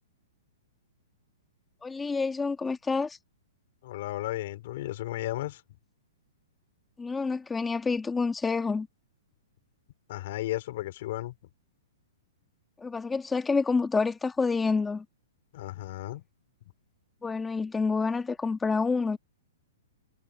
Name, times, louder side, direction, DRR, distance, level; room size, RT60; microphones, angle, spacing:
voice 1, 1.8-3.2 7.0-8.9 12.8-15.0 17.2-19.2, left 4 dB, 10° left, 1.6 m, -28 dB
voice 2, 3.8-5.6 10.1-11.3 15.5-16.2, left 16 dB, 45° left, 3.6 m, -34 dB
hypercardioid pair, 160°, 0 cm